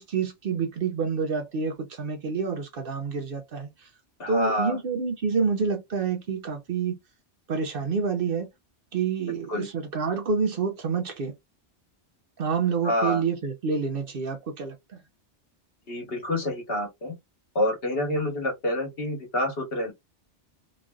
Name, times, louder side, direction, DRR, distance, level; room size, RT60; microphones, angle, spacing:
voice 1, 0.0-3.9 4.3-7.0 7.5-8.5 8.9-11.3 12.4-15.0, right 5 dB, 60° right, 0.8 m, -28 dB
voice 2, 4.2-4.8 9.3-9.7 12.8-13.2 15.9-17.1 17.5-19.9, left 1 dB, 55° left, 1.3 m, -27 dB
3.0 x 2.5 x 2.2 m
omnidirectional pair, 1.2 m